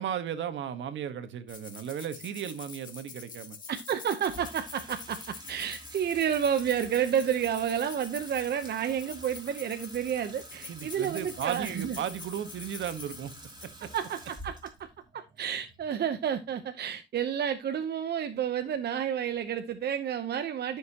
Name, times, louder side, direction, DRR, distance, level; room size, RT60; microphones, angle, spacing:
voice 1, 0.0-3.6 10.7-13.3 13.8-13.9, right 9 dB, 70° right, 1.4 m, -35 dB
sound 1, 1.5-13.7, left 5 dB, 40° left, 2.4 m, -46 dB
voice 2, 3.7-12.0 13.9-14.9 15.1-20.8, right 9 dB, 55° right, 0.9 m, -30 dB
Water tap faucet / Sink (filling or washing), 4.2-16.6, right 1 dB, 20° right, 3.0 m, -49 dB
13.0 x 6.6 x 2.9 m
cardioid pair, 90°, 20 cm